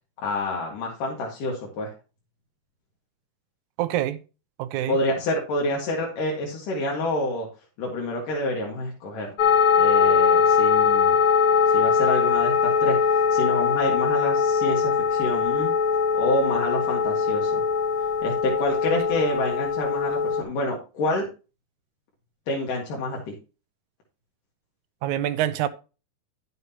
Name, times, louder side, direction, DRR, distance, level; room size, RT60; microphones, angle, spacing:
voice 1, 0.2-1.9 4.9-7.5 7.8-9.3 9.8-11.2 11.7-15.7 16.1-17.6 18.2-21.3 22.5-23.3, left 1 dB, 85° left, 3.6 m, -28 dB
voice 2, 3.8-4.2 4.6-5.0 25.0-25.7, right 12 dB, 80° right, 2.0 m, -25 dB
sound 1, 9.4-20.4, left 6 dB, 55° left, 1.8 m, -21 dB
11.0 x 8.0 x 2.9 m
omnidirectional pair, 3.7 m